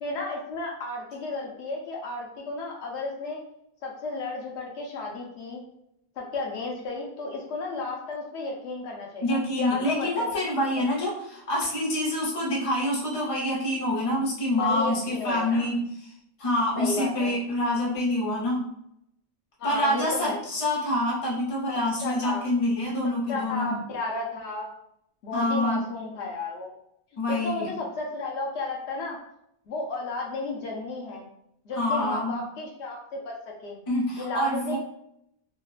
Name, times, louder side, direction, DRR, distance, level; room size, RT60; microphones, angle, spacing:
voice 1, 0.0-3.4 3.8-5.6 6.2-10.4 14.6-15.7 16.8-17.3 19.6-20.4 21.7-22.4 23.3-24.7 25.2-26.7 27.3-29.2 29.7-31.3 31.6-33.8 34.2-34.8, left 3 dB, 85° left, -1 dB, 1.0 m, -33 dB
voice 2, 9.2-16.1 16.4-18.6 19.6-23.8 25.3-25.8 27.2-27.7 31.8-32.3 33.9-34.8, left 1 dB, 35° left, -4 dB, 0.8 m, -26 dB
3.1 x 2.1 x 2.4 m, 0.76 s
omnidirectional pair, 1.1 m